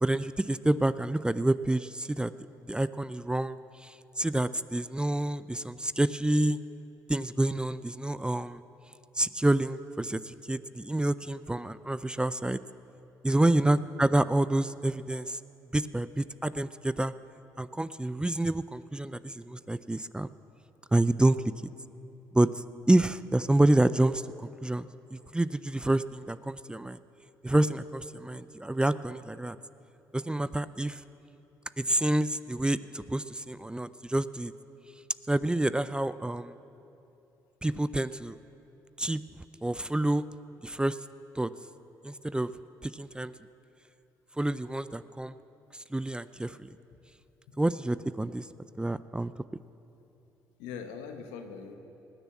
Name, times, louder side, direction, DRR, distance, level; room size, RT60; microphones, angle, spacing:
voice 1, 0.0-2.3 2.7-6.6 7.1-8.6 9.2-12.6 13.2-15.4 15.7-17.1 17.6-20.3 20.9-21.4 22.3-27.0 27.4-29.6 30.1-31.0 31.8-34.5 35.3-36.6 37.6-38.4 39.0-39.2 39.6-40.2 40.6-41.0 41.4-41.5 42.0-42.5 42.8-43.3 44.4-45.3 45.7-46.7 47.6-48.5 48.8-49.3, right 1 dB, 10° right, 15 dB, 0.4 m, -28 dB
voice 2, 13.3-13.8 47.5-47.6 50.6-51.7, left 6 dB, 80° left, 5 dB, 1.2 m, -42 dB
19.0 x 6.8 x 8.5 m, 2.9 s
hypercardioid pair, 55°, 9 cm